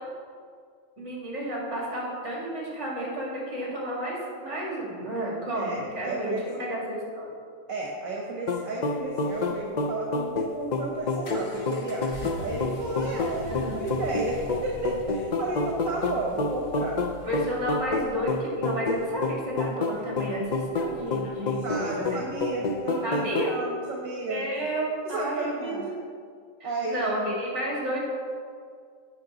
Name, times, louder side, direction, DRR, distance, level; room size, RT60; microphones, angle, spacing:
voice 1, 1.0-7.3 13.4-13.8 17.3-22.2 23.0-23.5 24.3-25.8 26.6-28.0, right 1 dB, 60° right, -5 dB, 3.6 m, -31 dB
voice 2, 5.5-6.7 7.7-17.0 21.6-24.5 25.0-25.9 26.6-27.1, right 2 dB, 80° right, -2 dB, 1.6 m, -33 dB
sound 1, 8.5-23.6, left 3 dB, 50° left, 0.5 m, -29 dB
sound 2, 9.0-22.9, left 1 dB, 85° left, 1.7 m, -44 dB
16.5 x 5.9 x 3.9 m, 2.1 s
omnidirectional pair, 1.4 m